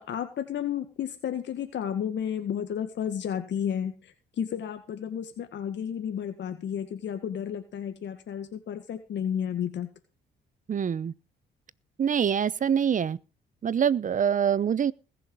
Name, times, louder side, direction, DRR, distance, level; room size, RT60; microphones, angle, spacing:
voice 1, 0.0-9.9, left 9 dB, 65° left, 1.9 m, -32 dB
voice 2, 10.7-11.1 12.0-13.2 13.6-14.9, right 8 dB, 40° right, 0.8 m, -25 dB
20.5 x 7.1 x 5.3 m
cardioid pair, 90°, 20 cm